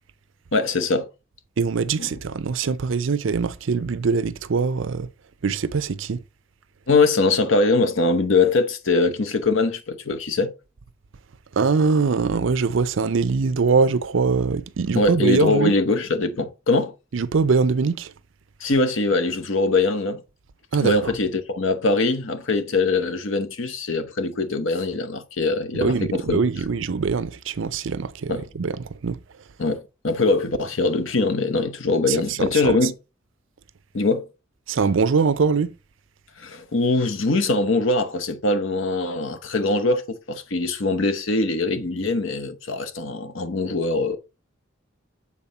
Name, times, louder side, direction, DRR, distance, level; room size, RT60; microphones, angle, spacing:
voice 1, 0.5-1.1 2.0-2.2 6.9-10.5 14.9-16.9 18.6-20.2 20.8-26.4 28.3-28.5 29.6-32.9 33.9-34.3 36.4-44.2, left 3 dB, 75° left, 0.9 m, -22 dB
voice 2, 1.6-5.1 5.4-6.2 11.6-15.7 17.1-18.1 20.7-21.1 25.7-29.2 32.1-32.4 32.6-32.8 34.7-35.7, right 4 dB, 75° right, 0.5 m, -22 dB
7.4 x 4.2 x 4.0 m
head